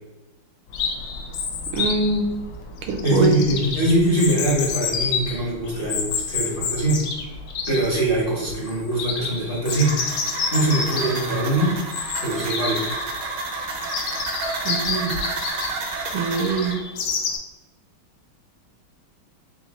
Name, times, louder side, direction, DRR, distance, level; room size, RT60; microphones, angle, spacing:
Chirp tweet, 0.7-17.4, left 5 dB, 85° left, 1.5 m, -29 dB
voice 1, 1.7-2.3 2.9-3.4 14.6-15.2 16.1-16.8, right 3 dB, 85° right, 3 dB, 1.5 m, -23 dB
voice 2, 3.0-7.0 7.7-9.9 10.5-11.8 12.2-12.9, right 1 dB, 40° left, -6 dB, 0.8 m, -22 dB
sound 1, 9.7-16.7, right 3 dB, 70° right, 0.8 m, -30 dB
4.4 x 2.1 x 4.0 m, 1.1 s
omnidirectional pair, 2.4 m